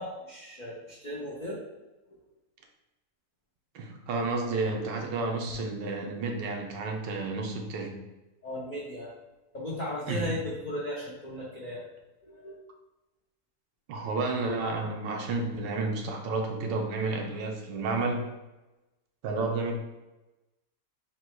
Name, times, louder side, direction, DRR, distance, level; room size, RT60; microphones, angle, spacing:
voice 1, 0.0-1.6 8.4-9.1 9.5-11.8 12.2-12.6, left 1 dB, 60° left, -5 dB, 0.4 m, -36 dB
voice 2, 3.7-8.0 10.1-10.4 13.9-18.3 19.2-19.7, right 3 dB, 85° right, 2 dB, 1.4 m, -31 dB
3.9 x 2.3 x 4.4 m, 1.0 s
omnidirectional pair, 1.9 m